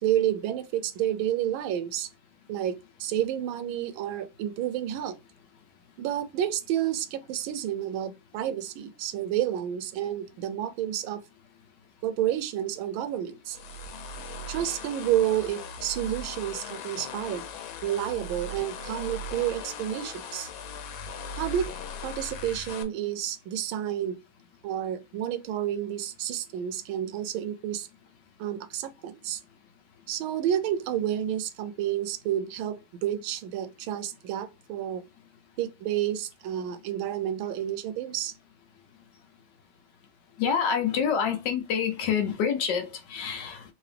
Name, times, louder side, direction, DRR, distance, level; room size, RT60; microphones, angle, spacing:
voice 1, 0.0-2.1 2.5-5.2 6.0-11.2 12.0-13.6 14.5-17.4 17.8-20.5 21.4-21.7 22.0-24.2 24.6-27.9 28.4-29.4 30.1-35.0 35.6-38.3, right 11 dB, 90° right, 1.4 m, -30 dB
sound 1, 13.5-22.8, left 3 dB, 85° left, 1.5 m, -39 dB
voice 2, 40.4-43.6, left 7 dB, 70° left, 1.3 m, -27 dB
3.8 x 2.7 x 3.3 m
omnidirectional pair, 2.1 m